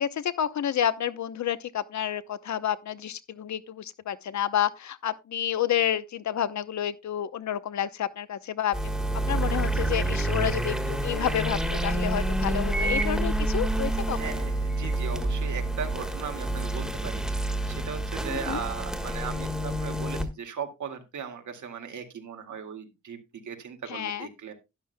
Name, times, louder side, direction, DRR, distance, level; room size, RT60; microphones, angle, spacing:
voice 1, 0.0-9.0 9.3-14.4 18.3-18.6 23.9-24.3, left 10 dB, 75° left, 0.8 m, -30 dB
sound 1, 8.7-20.2, right 1 dB, ahead, 1.4 m, -28 dB
voice 2, 14.1-23.2 23.4-24.5, right 7 dB, 85° right, 2.1 m, -38 dB
12.0 x 11.0 x 2.2 m
wide cardioid pair, 140°, 29 cm